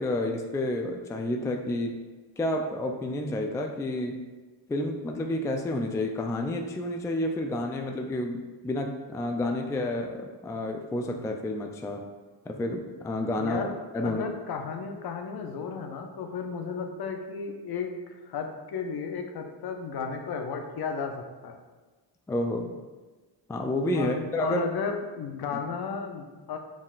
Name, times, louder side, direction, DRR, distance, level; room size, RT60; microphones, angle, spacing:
voice 1, 0.0-2.0 2.4-4.2 4.7-12.0 12.5-13.7 13.9-14.3 22.3-22.7 23.5-24.6, left 1 dB, 10° left, 3 dB, 0.3 m, -30 dB
voice 2, 13.4-13.7 14.0-21.6 23.9-26.6, left 5 dB, 55° left, 4 dB, 0.7 m, -34 dB
5.3 x 3.6 x 2.5 m, 1.3 s
cardioid pair, 70°, 44 cm